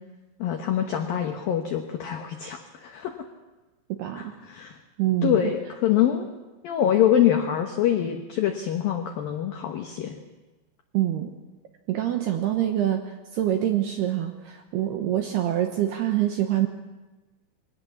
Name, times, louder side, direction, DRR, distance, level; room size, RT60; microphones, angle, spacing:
voice 1, 0.4-3.1 4.1-4.8 5.2-6.3 6.6-10.2, left 10 dB, 85° left, 4 dB, 2.0 m, -25 dB
voice 2, 3.9-4.3 5.0-5.5 10.9-11.3 11.9-16.7, right 12 dB, 75° right, 4 dB, 2.4 m, -25 dB
23.0 x 17.0 x 7.1 m, 1.2 s
omnidirectional pair, 6.0 m